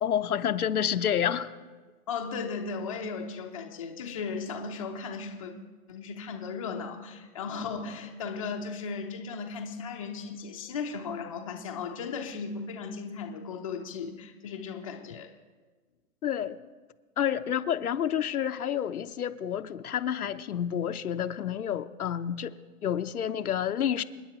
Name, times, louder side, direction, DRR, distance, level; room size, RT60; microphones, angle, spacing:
voice 1, 0.0-1.5 16.2-16.6 17.2-22.5 22.8-24.0, left 9 dB, 75° left, 9 dB, 0.8 m, -29 dB
voice 2, 2.1-5.5 5.9-15.3, left 5 dB, 25° left, 2 dB, 0.7 m, -36 dB
28.0 x 9.8 x 3.0 m, 1.3 s
hypercardioid pair, 165°, 45 cm